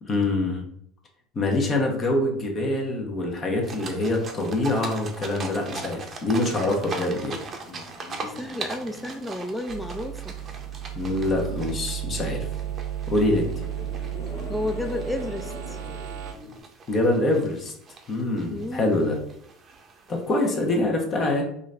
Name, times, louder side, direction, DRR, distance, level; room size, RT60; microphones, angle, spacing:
voice 1, 0.0-0.6 1.3-7.4 10.9-12.5 13.1-13.5 16.9-17.7 18.1-19.2 20.1-21.5, left 2 dB, 35° left, 1 dB, 1.0 m, -25 dB
sound 1, 3.6-20.8, right 3 dB, 35° right, 0.7 m, -40 dB
sound 2, 7.5-16.6, left 2 dB, 50° left, 1.2 m, -44 dB
voice 2, 8.2-10.4 14.5-15.8 18.5-19.0 20.4-20.7, left 1 dB, 5° left, 7 dB, 0.3 m, -32 dB
sound 3, 9.7-16.3, right 11 dB, 80° right, 0.5 m, -34 dB
3.8 x 2.5 x 3.3 m, 0.69 s
supercardioid pair, 100°, 0 cm